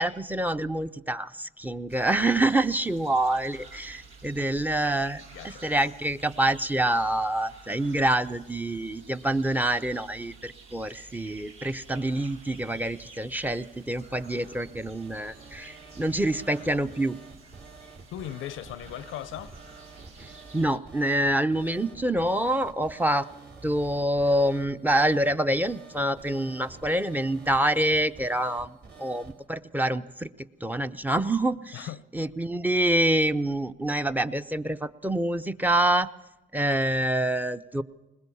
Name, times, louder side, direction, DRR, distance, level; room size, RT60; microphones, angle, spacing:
voice 1, 0.0-17.2 20.2-23.3 23.6-30.3 30.6-31.9 32.1-36.1 36.5-37.8, right 1 dB, 10° right, 0.6 m, -26 dB
sound 1, 1.9-20.8, right 3 dB, 90° right, 1.8 m, -50 dB
voice 2, 5.3-5.6 18.1-19.6 31.7-32.0, left 12 dB, 85° left, 0.6 m, -38 dB
sound 2, 13.6-29.4, right 4 dB, 55° right, 2.9 m, -49 dB
21.0 x 20.0 x 7.0 m
cardioid pair, 90°, 20 cm